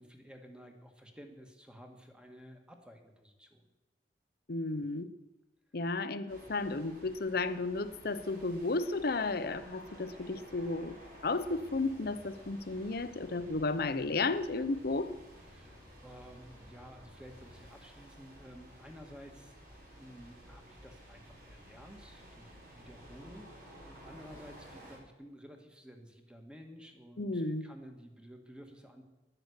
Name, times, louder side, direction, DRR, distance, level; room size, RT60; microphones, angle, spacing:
voice 1, 0.0-3.7 14.1-14.3 15.4-19.5 19.9-29.0, equal, 5° right, 4 dB, 1.8 m, -53 dB
voice 2, 4.5-5.1 5.7-11.0 11.2-15.2 27.2-27.6, left 3 dB, 60° left, 12 dB, 0.8 m, -33 dB
sound 1, 6.3-25.0, equal, 55° right, 4.0 m, -54 dB
Mechanisms, 11.4-17.7, left 1 dB, 30° right, 6.0 m, -59 dB
11.0 x 10.5 x 8.1 m, 1.0 s
head